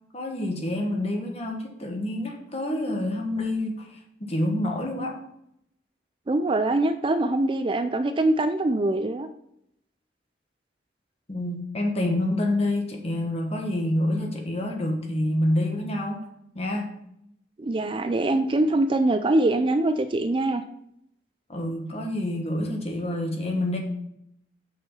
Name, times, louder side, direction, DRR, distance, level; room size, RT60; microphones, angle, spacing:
voice 1, 0.1-5.2 11.3-16.2 16.5-16.9 21.5-23.8, left 1 dB, 35° left, 2 dB, 1.4 m, -27 dB
voice 2, 6.3-9.3 17.6-20.6, right 2 dB, 30° right, 9 dB, 0.4 m, -23 dB
6.5 x 5.8 x 5.4 m, 0.76 s
head